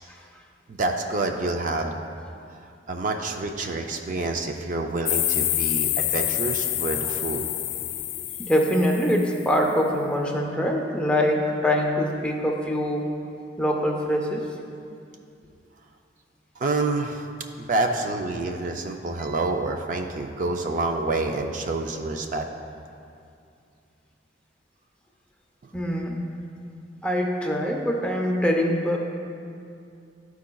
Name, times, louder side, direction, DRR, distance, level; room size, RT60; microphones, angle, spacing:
voice 1, 0.7-2.1 2.9-7.4 16.6-17.3 17.6-22.5, right 2 dB, 45° right, 3 dB, 0.4 m, -27 dB
sound 1, 5.1-9.4, left 14 dB, 85° left, 0.3 m, -27 dB
voice 2, 8.4-13.1 13.6-14.5 25.7-26.2 27.0-29.0, equal, 5° left, 0 dB, 0.6 m, -24 dB
12.5 x 4.7 x 2.3 m, 2.5 s
head